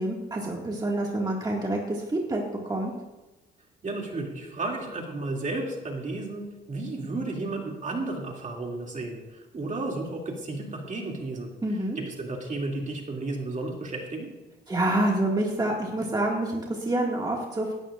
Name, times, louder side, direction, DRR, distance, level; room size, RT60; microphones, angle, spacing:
voice 1, 0.0-2.9 11.6-12.0 14.7-17.7, right 1 dB, 20° right, -2 dB, 2.0 m, -27 dB
voice 2, 3.8-11.5 12.0-14.3, right 2 dB, 40° right, 0 dB, 2.7 m, -33 dB
17.5 x 12.5 x 2.5 m, 1.1 s
cardioid pair, 90°, 20 cm